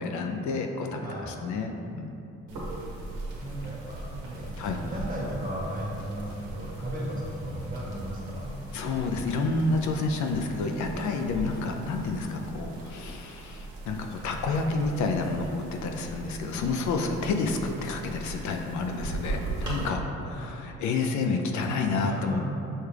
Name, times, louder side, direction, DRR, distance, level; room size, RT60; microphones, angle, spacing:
voice 1, 0.0-2.2 4.6-4.8 8.7-22.5, left 3 dB, 70° left, 3 dB, 0.5 m, -29 dB
sound 1, 2.5-19.9, right 2 dB, 85° right, 1.2 m, -39 dB
voice 2, 3.4-8.5 20.4-20.7 22.0-22.5, equal, 30° right, -4 dB, 1.1 m, -35 dB
6.4 x 2.3 x 3.2 m, 2.8 s
cardioid pair, 90°, 30 cm